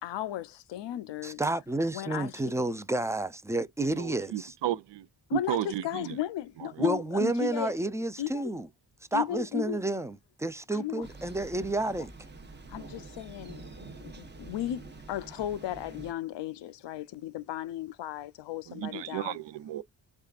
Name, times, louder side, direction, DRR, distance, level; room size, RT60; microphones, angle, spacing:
voice 1, 0.0-1.4 1.9-2.7 5.3-7.7 8.2-8.5 9.1-9.8 10.7-11.0 12.0-12.1 12.7-13.6 14.0-19.4, left 12 dB, 75° left, 0.5 m, -35 dB
voice 2, 1.2-4.5 6.8-8.7 9.1-12.1, right 2 dB, 5° right, 0.3 m, -30 dB
voice 3, 3.8-6.2 6.6-6.9 18.7-19.8, right 12 dB, 80° right, 0.5 m, -34 dB
Thunder, 11.0-16.1, right 3 dB, 25° right, 0.8 m, -46 dB
3.6 x 3.2 x 2.3 m
cardioid pair, 80°, 43 cm